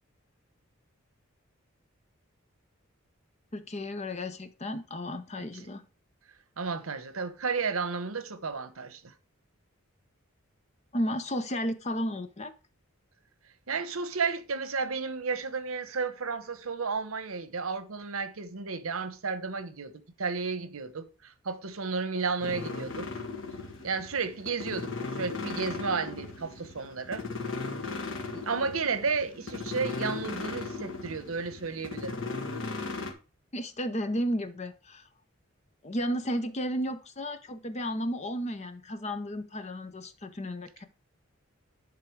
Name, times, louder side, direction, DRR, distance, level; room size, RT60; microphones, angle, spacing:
voice 1, 3.5-5.8 10.9-12.5 33.5-35.0 35.8-40.9, equal, 30° left, 0.7 m, -33 dB
voice 2, 6.6-9.1 13.7-19.9 20.2-23.1 23.8-27.2 28.3-32.2, right 4 dB, 85° right, 1.0 m, -32 dB
sound 1, 22.4-33.1, left 3 dB, 65° left, 1.5 m, -37 dB
11.0 x 3.8 x 4.6 m
head